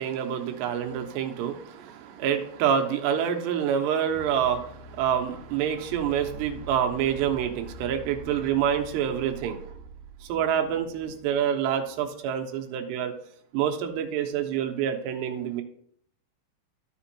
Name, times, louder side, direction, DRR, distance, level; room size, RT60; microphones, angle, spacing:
voice 1, 0.0-9.6 10.3-13.1 13.5-15.6, right 9 dB, 80° right, 4 dB, 2.7 m, -27 dB
sound 1, 4.1-11.3, right 2 dB, 80° left, 2.0 m, -45 dB
12.5 x 5.1 x 2.8 m, 0.64 s
omnidirectional pair, 5.2 m